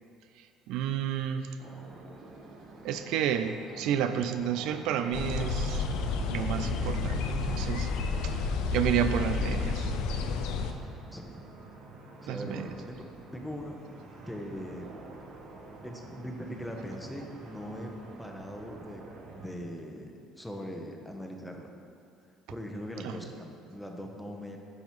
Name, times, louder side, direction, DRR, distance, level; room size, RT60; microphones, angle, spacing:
voice 1, 0.7-1.5 2.8-5.9 6.3-7.9 8.2-8.4 8.7-9.9 12.3-12.7 23.0-23.2, right 9 dB, 75° right, 9 dB, 0.3 m, -31 dB
sound 1, 1.6-19.5, right 2 dB, 60° right, 0.9 m, -49 dB
sound 2, 5.1-10.7, left 4 dB, 80° left, 0.5 m, -30 dB
voice 2, 11.1-11.4 12.2-13.8 14.2-15.0 15.8-19.0 19.3-21.7 22.5-24.6, equal, 5° left, 1 dB, 0.9 m, -40 dB
9.2 x 5.4 x 3.1 m, 2.4 s
supercardioid pair, 90°, 0 cm